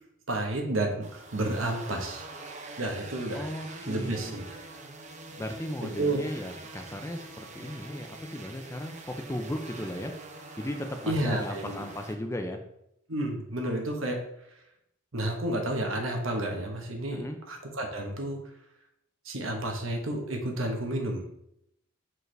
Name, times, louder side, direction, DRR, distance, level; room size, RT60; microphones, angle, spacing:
voice 1, 0.3-2.3 2.8-3.5 3.9-4.4 5.8-6.2 11.1-11.9 13.1-14.3 15.1-18.4 19.2-21.3, right 1 dB, 75° right, 3 dB, 1.1 m, -31 dB
sound 1, 1.0-12.1, right 2 dB, 35° right, 0.7 m, -44 dB
voice 2, 3.3-4.4 5.4-10.1 10.6-12.6 17.1-17.4, left 1 dB, 15° left, 5 dB, 0.5 m, -36 dB
6.2 x 4.6 x 3.3 m, 0.78 s
head